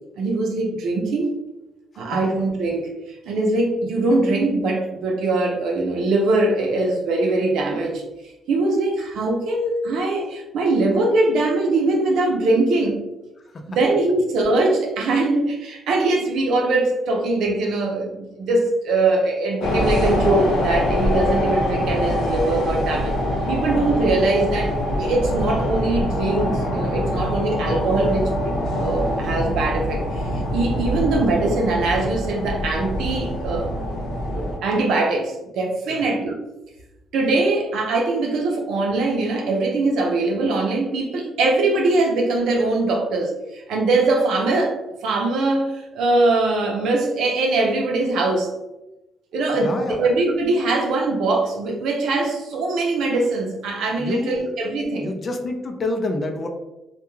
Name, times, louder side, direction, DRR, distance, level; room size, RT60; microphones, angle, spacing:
voice 1, 0.2-1.3 2.0-8.0 8.5-13.0 13.7-23.1 23.5-33.8 34.3-36.4 37.1-48.5 49.3-55.1, right 2 dB, 80° right, 1 dB, 0.6 m, -22 dB
sound 1, 19.6-34.6, equal, 85° left, 0.6 m, -24 dB
voice 2, 49.5-50.0 54.0-54.5 55.0-56.5, left 2 dB, 45° left, 4 dB, 0.4 m, -27 dB
2.2 x 2.2 x 3.0 m, 0.99 s
cardioid pair, 90°, 0 cm